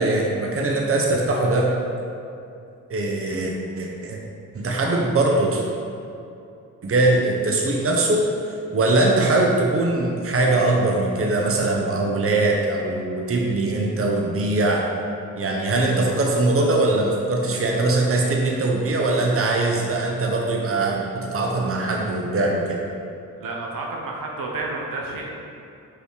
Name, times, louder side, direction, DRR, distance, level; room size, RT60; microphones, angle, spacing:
voice 1, 0.0-1.7 2.9-4.2 4.5-5.6 6.8-8.3 8.7-14.8 15.4-22.8, right 2 dB, 40° right, 0 dB, 0.9 m, -21 dB
voice 2, 23.4-25.3, right 3 dB, 75° right, -1 dB, 1.0 m, -30 dB
5.6 x 4.2 x 4.8 m, 2.7 s
cardioid pair, 75°, 34 cm